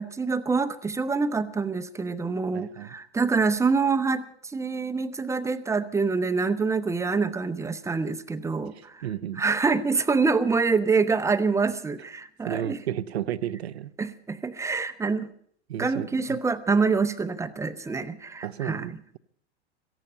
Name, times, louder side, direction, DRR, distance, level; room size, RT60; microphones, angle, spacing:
voice 1, 0.0-4.2 4.5-9.0 9.4-12.8 14.0-15.3 15.8-18.9, right 4 dB, 10° right, 11 dB, 0.7 m, -26 dB
voice 2, 2.5-2.9 8.8-9.4 12.4-13.9 15.7-16.4 18.4-19.2, right 11 dB, 65° right, 16 dB, 0.8 m, -33 dB
18.0 x 14.0 x 5.4 m, 0.62 s
figure-of-eight pair, 95°, 35 cm